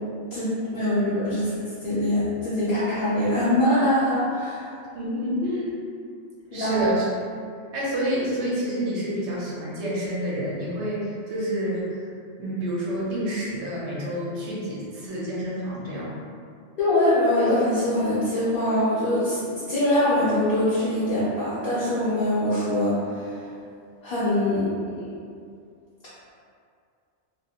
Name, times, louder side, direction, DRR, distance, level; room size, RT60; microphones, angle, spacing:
voice 1, 0.3-1.4 1.8-4.7 6.5-6.8 16.8-19.4 19.7-23.5 24.0-24.7 25.0-25.1, left 1 dB, 55° left, -11 dB, 0.8 m, -23 dB
voice 2, 4.9-5.7 6.5-7.1 7.7-11.9 12.4-16.1, equal, 65° right, -6 dB, 0.9 m, -28 dB
2.4 x 2.3 x 2.8 m, 2.3 s
omnidirectional pair, 1.3 m